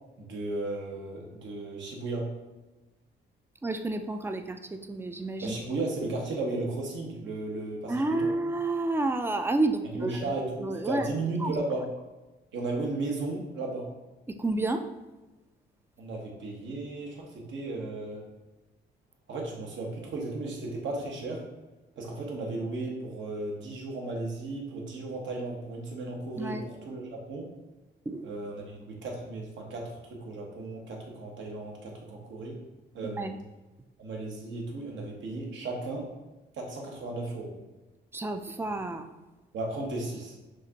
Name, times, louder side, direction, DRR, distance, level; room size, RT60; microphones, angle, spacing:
voice 1, 0.2-2.3 5.4-8.3 10.0-11.9 12.5-13.9 16.0-18.2 19.3-21.4 22.0-27.5 28.2-32.6 32.9-33.3 34.0-36.1 36.5-37.5 39.5-40.3, right 2 dB, 70° right, -1 dB, 1.2 m, -35 dB
voice 2, 3.6-5.6 7.9-10.1 10.4-11.1 11.4-11.5 14.3-14.8 26.4-26.7 28.1-28.3 33.2-33.3 38.1-39.1, right 2 dB, 10° right, 7 dB, 0.4 m, -30 dB
6.0 x 2.5 x 2.9 m, 1.1 s
cardioid pair, 90°, 20 cm